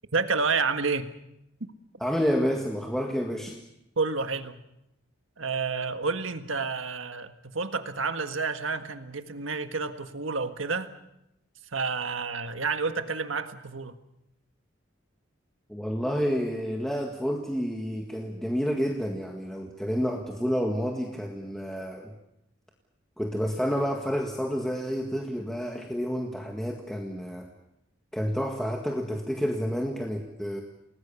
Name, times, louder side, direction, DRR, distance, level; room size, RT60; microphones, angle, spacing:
voice 1, 0.1-1.1 4.0-4.6 5.4-10.9 11.7-14.0, right 4 dB, 90° right, 8 dB, 1.7 m, -29 dB
voice 2, 2.0-3.6 15.7-22.1 23.2-27.5 28.1-30.6, equal, ahead, 1 dB, 1.9 m, -29 dB
29.5 x 19.5 x 7.1 m, 0.85 s
head